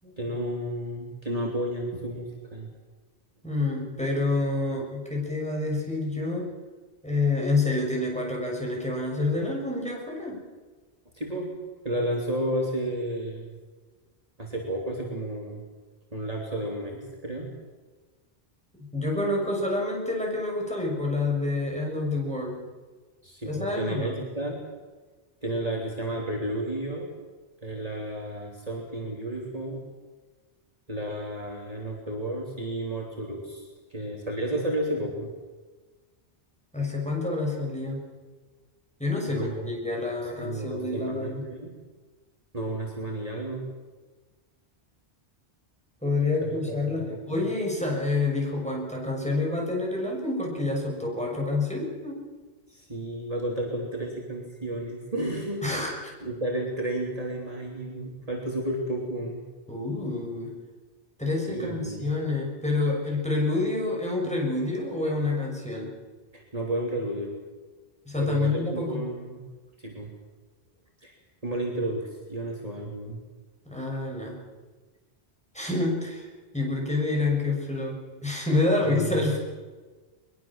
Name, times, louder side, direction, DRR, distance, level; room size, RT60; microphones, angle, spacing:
voice 1, 0.2-2.7 11.1-11.5 11.8-13.6 14.4-15.6 16.1-17.5 23.2-24.6 25.4-27.1 27.6-29.8 30.9-35.3 39.3-39.7 40.2-41.7 42.5-43.7 46.7-47.4 52.7-55.6 56.2-59.4 61.5-62.1 66.3-67.4 68.2-69.4 69.8-70.1 71.0-71.1 71.4-73.2 78.8-79.4, right 1 dB, 35° right, -1 dB, 3.4 m, -32 dB
voice 2, 3.4-6.5 7.0-10.4 18.8-22.6 23.4-24.2 36.7-38.0 39.0-41.4 46.0-52.2 55.6-55.9 59.7-60.5 61.2-65.9 68.1-69.1 73.7-74.4 75.5-76.3 76.5-79.4, left 2 dB, 5° left, -1 dB, 6.4 m, -28 dB
22.5 x 22.0 x 7.4 m, 1.3 s
omnidirectional pair, 1.1 m